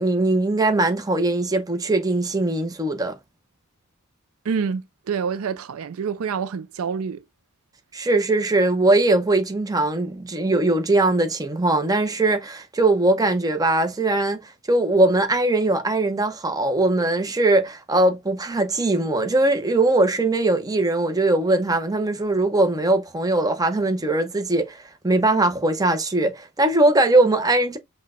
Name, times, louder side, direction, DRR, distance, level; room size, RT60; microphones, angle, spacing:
voice 1, 0.0-3.2 7.9-14.4 14.7-27.8, right 2 dB, 15° right, 0.7 m, -20 dB
voice 2, 4.4-7.2, right 6 dB, 70° right, 0.4 m, -27 dB
5.6 x 2.2 x 3.6 m
head